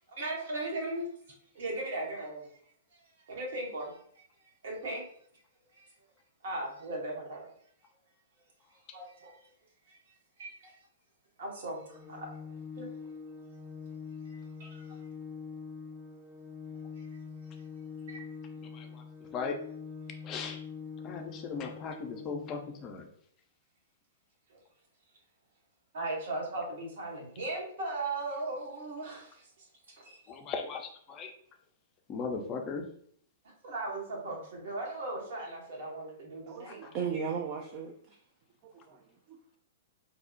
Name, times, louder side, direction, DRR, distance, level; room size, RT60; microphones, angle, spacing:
voice 1, 0.1-1.1 1.5-2.6 3.0-5.0 5.7-5.9 6.4-7.5 8.7-9.5 9.9-10.8 11.4-12.5 12.8-12.9 14.3-15.0 17.0-17.1 18.1-18.2 24.5-24.6 25.9-30.2 33.4-36.8, right 2 dB, 65° right, -1 dB, 0.8 m, -38 dB
Organ, 11.9-22.8, left 6 dB, ahead, 0.6 m, -44 dB
voice 2, 18.7-19.0 19.3-19.6 20.2-20.6 21.0-23.1 30.3-31.3 32.1-32.8 36.7-36.9, left 5 dB, 30° left, 4 dB, 0.4 m, -37 dB
voice 3, 36.5-38.2 38.9-39.0 39.3-39.4, right 6 dB, 45° right, 2 dB, 0.3 m, -36 dB
2.6 x 2.0 x 2.5 m, 0.63 s
figure-of-eight pair, 110°, 0 cm